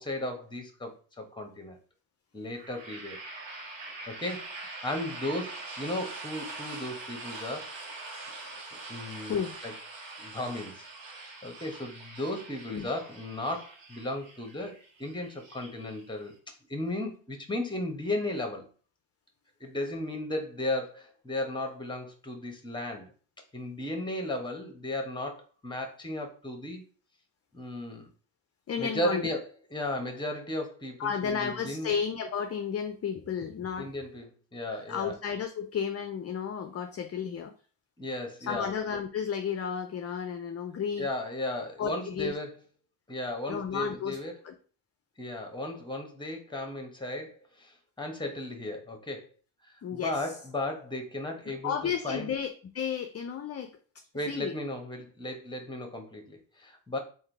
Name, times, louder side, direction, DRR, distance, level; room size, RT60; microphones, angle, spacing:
voice 1, 0.0-1.8 2.3-3.2 4.1-7.7 8.9-9.7 10.2-18.7 19.6-23.1 23.5-26.8 27.5-28.1 28.8-29.4 29.7-31.9 33.8-35.2 38.0-38.7 41.0-42.5 43.1-44.3 45.2-49.3 49.7-52.3 54.1-57.0, left 1 dB, 10° left, 4 dB, 1.2 m, -35 dB
sound 1, 2.5-16.3, right 2 dB, 70° right, 1.4 m, -43 dB
voice 2, 28.7-29.2 31.0-33.9 34.7-37.5 38.4-41.1 41.8-42.3 43.5-44.2 44.4-44.5 49.8-50.3 51.5-53.7 54.3-54.5, left 7 dB, 35° left, 7 dB, 0.5 m, -33 dB
3.6 x 2.7 x 4.6 m, 0.40 s
supercardioid pair, 75°, 46 cm